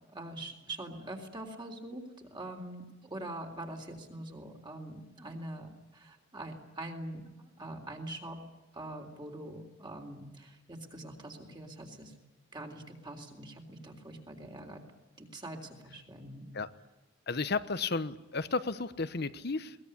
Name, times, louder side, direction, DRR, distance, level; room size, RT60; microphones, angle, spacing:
voice 1, 0.1-8.4 8.7-12.1 12.5-14.8 15.2-16.5, right 1 dB, 25° right, 3 dB, 3.6 m, -44 dB
voice 2, 17.3-19.8, left 4 dB, 55° left, 13 dB, 1.1 m, -33 dB
22.0 x 19.5 x 9.9 m, 1.1 s
head